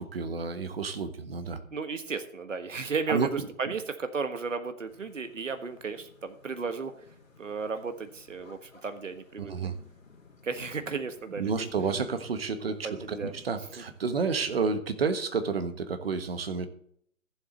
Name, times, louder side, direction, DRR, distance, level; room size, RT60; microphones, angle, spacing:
voice 1, 0.0-1.6 3.1-3.3 3.7-3.8 9.4-9.7 11.4-16.7, right 5 dB, 45° right, 9 dB, 1.4 m, -30 dB
voice 2, 1.7-6.9 7.4-9.5 10.4-11.7 12.8-13.3, right 5 dB, 65° right, 8 dB, 1.5 m, -34 dB
sound 1, 4.9-14.7, left 4 dB, 70° left, 3.8 m, -55 dB
15.0 x 7.6 x 4.0 m, 0.65 s
figure-of-eight pair, 140°, 41 cm